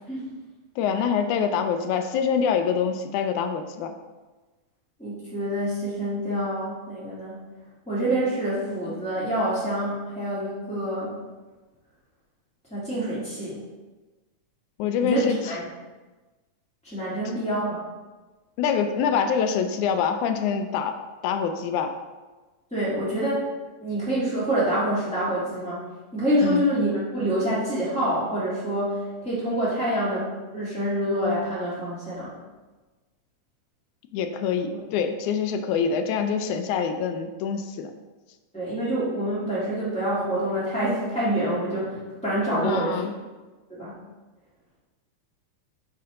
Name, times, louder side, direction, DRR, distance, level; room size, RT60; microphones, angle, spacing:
voice 1, 0.8-3.9 14.8-15.5 18.6-21.0 21.2-21.9 26.4-26.6 34.1-37.9 42.6-43.1, left 7 dB, 80° left, 7 dB, 1.9 m, -25 dB
voice 2, 5.0-7.4 7.9-11.1 12.7-13.6 15.0-15.6 16.8-17.8 22.7-23.4 23.8-25.8 26.1-32.3 34.6-34.7 38.5-43.0 43.8-44.0, right 1 dB, 10° left, -10 dB, 0.4 m, -26 dB
9.5 x 3.4 x 3.7 m, 1.2 s
omnidirectional pair, 3.7 m